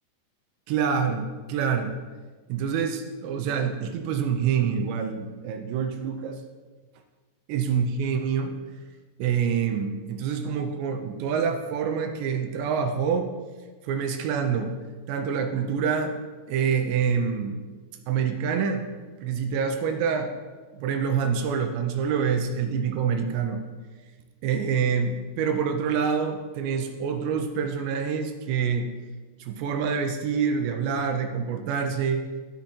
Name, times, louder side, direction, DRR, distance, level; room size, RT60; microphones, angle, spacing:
voice 1, 0.7-1.9 2.5-6.4 7.5-8.5 9.2-13.3 13.8-14.8 15.1-16.2 16.5-17.6 18.1-18.9 19.2-20.3 20.8-23.6 24.4-28.9 29.4-32.3, right 6 dB, 85° right, 6 dB, 2.9 m, -26 dB
15.0 x 5.7 x 4.3 m, 1.4 s
omnidirectional pair, 5.0 m